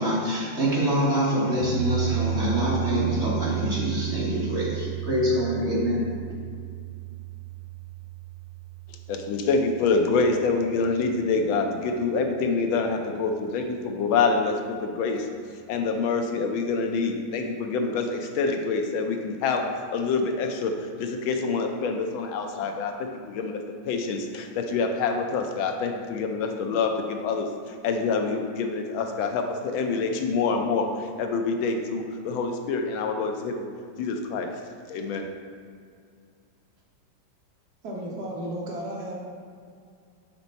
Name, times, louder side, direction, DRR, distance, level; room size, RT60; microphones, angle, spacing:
voice 1, 0.0-6.0, equal, 40° right, -6 dB, 1.1 m, -25 dB
sound 1, 1.6-11.8, right 10 dB, 85° right, 1.7 m, -33 dB
voice 2, 9.1-15.3 15.7-33.6 34.0-34.5 34.9-35.2, left 4 dB, 80° left, 4 dB, 1.4 m, -26 dB
voice 3, 37.8-39.1, right 1 dB, 55° right, -3 dB, 1.3 m, -33 dB
5.8 x 5.3 x 4.0 m, 2.2 s
omnidirectional pair, 2.2 m